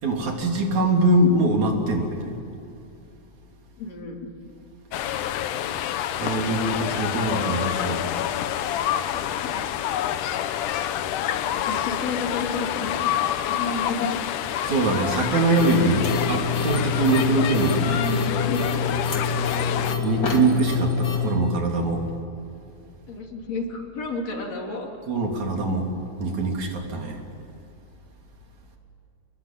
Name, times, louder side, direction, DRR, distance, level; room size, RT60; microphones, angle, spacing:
voice 1, 0.0-2.2 6.2-8.1 14.6-18.0 20.0-22.0 25.1-25.9 26.2-27.2, right 2 dB, 65° right, 1 dB, 4.6 m, -23 dB
voice 2, 3.8-4.3 7.1-7.2 9.4-9.7 11.7-13.1 13.5-14.1 17.8-18.8 21.1-21.2 23.1-24.9, left 3 dB, 55° left, 1 dB, 4.2 m, -32 dB
sound 1, 4.9-20.0, left 11 dB, 80° left, 2.5 m, -28 dB
sound 2, 15.6-21.3, left 5 dB, 35° left, 3.0 m, -26 dB
30.0 x 21.5 x 9.1 m, 2.7 s
omnidirectional pair, 3.6 m